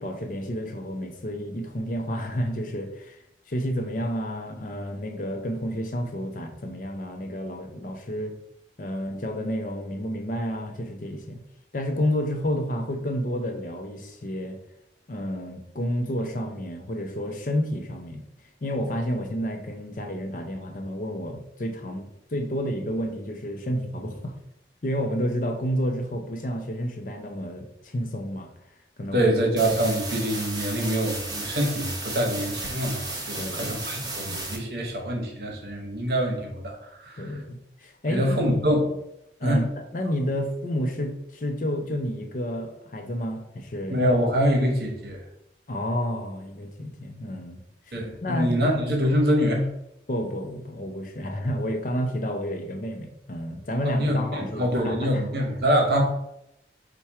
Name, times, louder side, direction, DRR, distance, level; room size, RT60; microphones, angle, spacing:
voice 1, 0.0-8.4 8.8-11.4 11.7-14.6 15.1-18.2 18.6-24.3 24.8-28.5 29.0-29.3 33.4-34.6 37.2-38.6 39.4-44.0 45.7-47.6 47.9-48.8 50.1-55.2, equal, 45° left, 4 dB, 0.5 m, -30 dB
voice 2, 29.1-37.4 38.1-38.9 39.4-39.6 43.9-45.2 47.9-49.7 53.8-56.0, equal, 60° right, 1 dB, 1.0 m, -25 dB
sound 1, 29.6-34.6, right 2 dB, 25° right, 0.7 m, -34 dB
4.2 x 2.2 x 4.6 m, 0.81 s
head